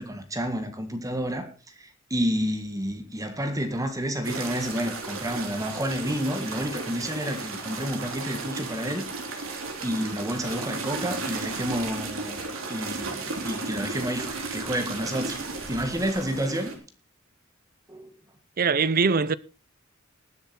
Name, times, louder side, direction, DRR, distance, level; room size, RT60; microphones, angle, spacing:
voice 1, 0.0-9.5 9.8-12.4 12.7-15.4 15.7-16.7 17.9-18.1, equal, 15° right, 1.8 m, -30 dB
sound 1, 4.2-16.8, right 3 dB, 85° right, 3.3 m, -34 dB
voice 2, 18.6-19.3, right 5 dB, 45° right, 0.6 m, -22 dB
20.0 x 7.2 x 4.3 m
head